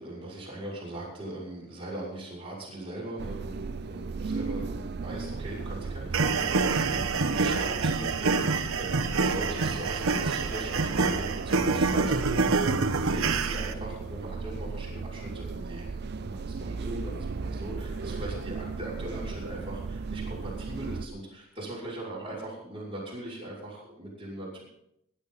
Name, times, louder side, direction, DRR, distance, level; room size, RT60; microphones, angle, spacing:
voice 1, 0.0-24.6, right 1 dB, 25° right, -6 dB, 6.1 m, -40 dB
sound 1, 3.2-21.1, right 4 dB, 50° right, 0.5 m, -36 dB
sound 2, 6.1-13.7, right 4 dB, 90° right, 1.1 m, -26 dB
21.5 x 11.5 x 4.1 m, 0.78 s
head